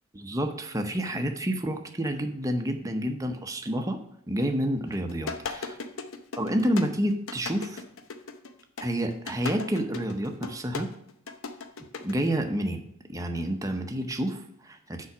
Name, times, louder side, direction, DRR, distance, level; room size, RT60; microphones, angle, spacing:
voice 1, 0.2-4.0 4.3-5.8 6.4-7.8 8.8-10.9 12.0-12.8 13.1-15.1, equal, 15° right, 5 dB, 0.7 m, -29 dB
sound 1, 4.9-12.3, left 4 dB, 65° left, 0.7 m, -37 dB
7.0 x 4.8 x 6.0 m, 0.73 s
head